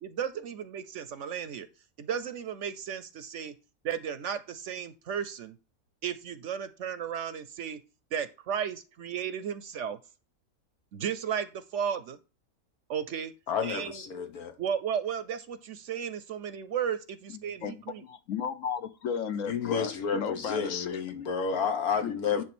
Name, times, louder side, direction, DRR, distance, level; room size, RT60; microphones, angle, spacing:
voice 1, 0.0-1.7 2.0-3.5 3.8-5.5 6.0-7.8 8.1-10.0 10.9-11.5 11.7-12.2 12.9-13.3 13.6-14.0 14.6-18.0, right 8 dB, 60° right, 0.9 m, -34 dB
voice 2, 13.5-14.5 19.4-22.4, left 6 dB, 80° left, 1.7 m, -31 dB
voice 3, 17.3-21.3 22.0-22.4, left 7 dB, 65° left, 1.1 m, -35 dB
10.0 x 3.4 x 6.0 m
omnidirectional pair, 1.6 m